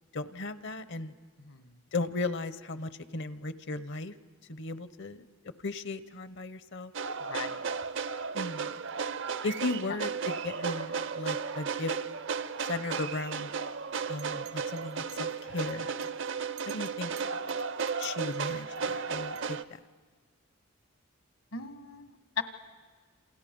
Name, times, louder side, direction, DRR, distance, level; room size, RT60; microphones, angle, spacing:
voice 1, 0.1-1.1 1.9-4.1 4.5-6.9 8.3-8.7 9.4-11.9 12.6-13.5 14.1-15.9 16.6-17.1 18.0-19.8, left 3 dB, 55° left, 13 dB, 0.8 m, -36 dB
voice 2, 1.4-1.8 7.3-7.7 9.9-10.0 21.5-22.4, left 6 dB, 75° left, 9 dB, 1.5 m, -38 dB
sound 1, 6.9-19.6, right 5 dB, 60° right, 0.6 m, -34 dB
Chink clink, 13.9-18.8 19.4-19.5, right 13 dB, 75° right, 1.5 m, -53 dB
28.0 x 28.0 x 5.3 m, 1.5 s
head